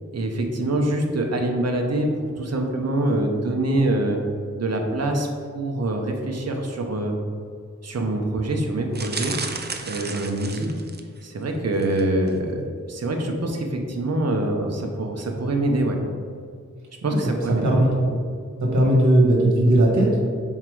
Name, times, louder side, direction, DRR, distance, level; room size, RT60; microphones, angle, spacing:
voice 1, 0.1-2.1 2.4-4.2 4.6-5.3 5.5-7.1 7.8-9.3 9.8-10.7 11.2-16.0 17.0-17.7, right 1 dB, 55° right, 2 dB, 1.0 m, -24 dB
sound 1, 8.9-11.2 11.7-12.0 12.3-12.4, right 4 dB, 35° right, 0.5 m, -33 dB
voice 2, 17.6-17.9 18.6-20.3, right 1 dB, 75° right, -2 dB, 1.6 m, -18 dB
5.8 x 4.5 x 4.8 m, 2.2 s
wide cardioid pair, 120°, 30 cm